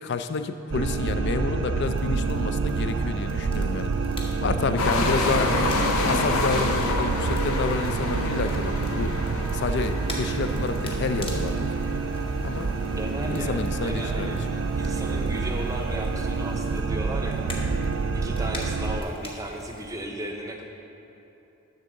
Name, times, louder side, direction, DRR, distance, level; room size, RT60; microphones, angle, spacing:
voice 1, 0.0-3.9 4.4-5.6 6.1-9.1 9.5-11.6 12.4-12.7 13.3-14.4, left 4 dB, 50° left, 10 dB, 0.4 m, -29 dB
sound 1, 0.7-19.0, right 4 dB, 55° right, 0.3 m, -28 dB
Crackle, 1.8-20.1, left 1 dB, 25° left, 0.8 m, -44 dB
sound 2, 4.8-16.8, left 3 dB, 80° left, 0.7 m, -30 dB
voice 2, 13.0-17.6 18.1-20.6, right 1 dB, 15° right, 2 dB, 0.6 m, -35 dB
10.5 x 3.7 x 6.3 m, 3.0 s
head